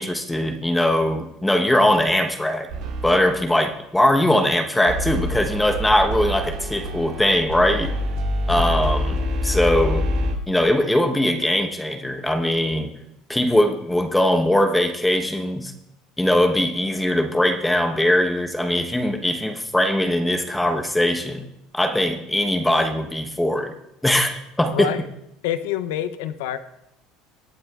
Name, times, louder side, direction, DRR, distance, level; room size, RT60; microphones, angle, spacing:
voice 1, 0.0-2.7 3.0-7.9 8.5-10.1 10.5-12.9 13.3-15.7 16.2-21.5 21.7-23.7 24.0-24.9, left 1 dB, 5° left, 5 dB, 1.0 m, -21 dB
sound 1, 2.7-3.4 4.9-10.3, left 1 dB, 75° right, 2.9 m, -26 dB
voice 2, 24.7-25.1 25.4-26.6, left 11 dB, 80° left, 12 dB, 0.7 m, -26 dB
23.5 x 8.7 x 2.4 m, 0.83 s
supercardioid pair, 90°, 0 cm